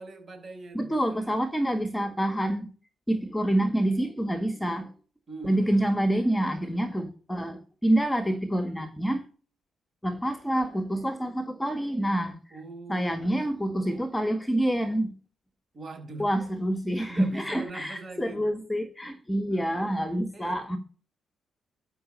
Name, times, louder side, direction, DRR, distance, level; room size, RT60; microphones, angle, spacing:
voice 1, 0.0-1.4 5.3-6.0 12.5-13.4 15.7-16.3 17.1-18.5 19.5-19.9 20.3-20.6, right 3 dB, 40° right, 5.4 m, -43 dB
voice 2, 0.8-2.7 3.1-4.9 5.4-9.2 10.0-12.6 12.9-15.1 16.2-20.8, right 1 dB, 10° left, 1.8 m, -27 dB
13.0 x 6.1 x 5.5 m
cardioid pair, 90°, 0 cm